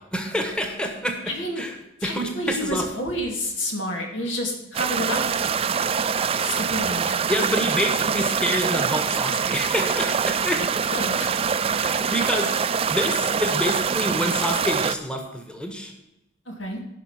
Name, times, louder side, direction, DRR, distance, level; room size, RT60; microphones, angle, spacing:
voice 1, 0.0-1.7 2.0-2.9 7.3-10.8 11.8-12.6 12.9-15.9, equal, 5° left, 3 dB, 1.3 m, -27 dB
voice 2, 1.3-1.6 2.0-5.4 6.4-7.2 10.9-11.3 16.5-16.8, equal, 85° left, 2 dB, 2.5 m, -29 dB
sound 1, 4.7-14.9, right 6 dB, 30° right, 0.4 m, -24 dB
14.5 x 5.8 x 5.8 m, 0.92 s
head